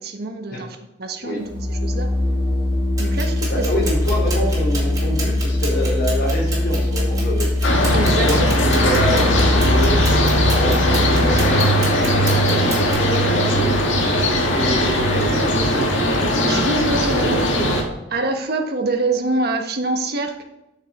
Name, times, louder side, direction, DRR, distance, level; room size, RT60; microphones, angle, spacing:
voice 1, 0.0-2.1 3.0-3.7 4.1-4.3 7.9-8.5 16.4-17.8 18.1-20.4, right 2 dB, 55° right, 4 dB, 1.3 m, -25 dB
Organ, 1.4-11.7, left 1 dB, 30° left, 2.9 m, -21 dB
sound 1, 3.0-13.2, right 3 dB, 20° right, 2.8 m, -32 dB
voice 2, 3.4-7.5 8.0-13.7 14.5-15.9 17.1-17.5, equal, 55° left, -3 dB, 3.4 m, -26 dB
sound 2, 7.6-17.8, equal, 85° left, 1.8 m, -19 dB
9.4 x 6.6 x 4.8 m, 0.93 s
head